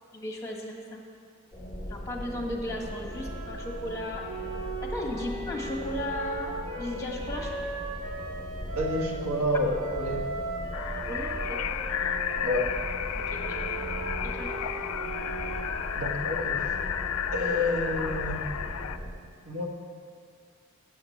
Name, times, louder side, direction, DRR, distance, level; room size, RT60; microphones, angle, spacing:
voice 1, 0.1-1.0 1.9-4.2 4.8-7.6 11.1-11.7 13.1-13.7 14.2-14.5 18.0-18.1, left 1 dB, 15° left, 0 dB, 1.3 m, -36 dB
sound 1, 1.5-19.1, equal, 15° right, 1.7 m, -39 dB
sound 2, 3.1-9.1 9.7-16.4, right 2 dB, 60° right, 2.3 m, -38 dB
voice 2, 8.8-10.3 12.4-12.7 15.9-16.6 17.3-18.4 19.4-19.7, left 1 dB, 85° right, 1 dB, 1.4 m, -29 dB
sound 3, 10.7-19.0, left 9 dB, 75° left, 0.4 m, -33 dB
7.8 x 7.1 x 7.7 m, 2.2 s
head